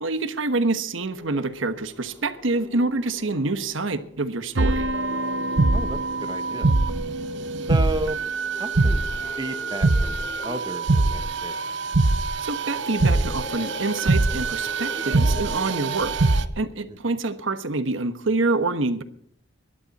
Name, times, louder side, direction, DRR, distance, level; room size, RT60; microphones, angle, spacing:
voice 1, 0.0-4.9 12.4-16.2 16.6-19.0, right 3 dB, 80° right, 10 dB, 1.2 m, -26 dB
sound 1, 0.9-16.6, left 1 dB, 10° left, 4.5 m, -43 dB
sound 2, 4.5-16.4, right 3 dB, 65° right, 0.9 m, -23 dB
voice 2, 5.7-6.7 7.7-8.2 8.5-9.0 9.4-10.1 10.4-11.6 17.1-17.2, right 1 dB, 20° right, 8 dB, 1.0 m, -32 dB
21.5 x 11.5 x 4.2 m, 0.63 s
head